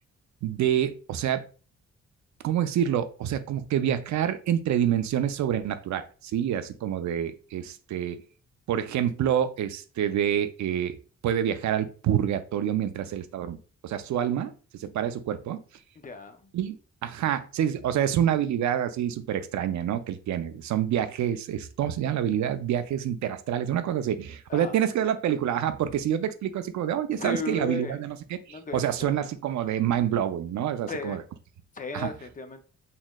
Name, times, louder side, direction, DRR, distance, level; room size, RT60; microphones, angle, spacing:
voice 1, 0.4-1.4 2.4-8.2 8.7-11.0 11.2-13.6 13.8-15.6 16.5-16.8 17.0-31.2 31.9-32.1, right 10 dB, 75° right, 10 dB, 0.5 m, -27 dB
voice 2, 16.0-16.5 24.5-24.8 27.2-28.0 28.5-29.3 30.9-31.2 31.7-32.6, left 3 dB, 30° left, 7 dB, 0.4 m, -35 dB
4.1 x 3.0 x 2.2 m, 0.37 s
cardioid pair, 130°, 29 cm